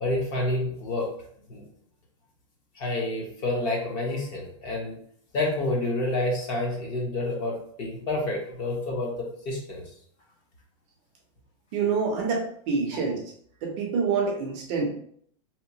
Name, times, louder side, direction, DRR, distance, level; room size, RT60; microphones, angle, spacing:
voice 1, 0.0-1.1 1.5-1.6 2.8-5.0 5.3-9.8, left 2 dB, 30° left, -1 dB, 0.6 m, -28 dB
voice 2, 11.7-13.3 13.6-14.9, right 5 dB, 30° right, 0 dB, 0.5 m, -27 dB
2.8 x 2.1 x 2.7 m, 0.63 s
supercardioid pair, 170°, 16 cm